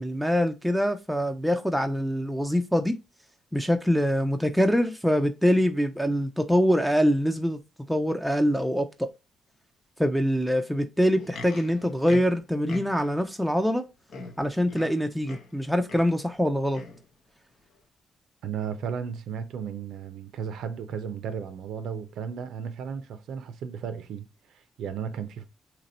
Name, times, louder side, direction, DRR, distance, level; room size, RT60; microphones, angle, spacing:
voice 1, 0.0-3.0 3.5-7.6 7.9-9.1 10.0-13.8 14.4-16.8, equal, ahead, 0.4 m, -24 dB
Livestock farm animals working animals, 11.1-13.2 13.8-13.9 14.1-15.6 15.9-16.2 16.7-17.1 17.7-17.8, left 2 dB, 65° left, 0.8 m, -42 dB
voice 2, 18.4-25.4, right 7 dB, 80° right, 0.4 m, -35 dB
2.9 x 2.8 x 4.0 m
cardioid pair, 90°, 0 cm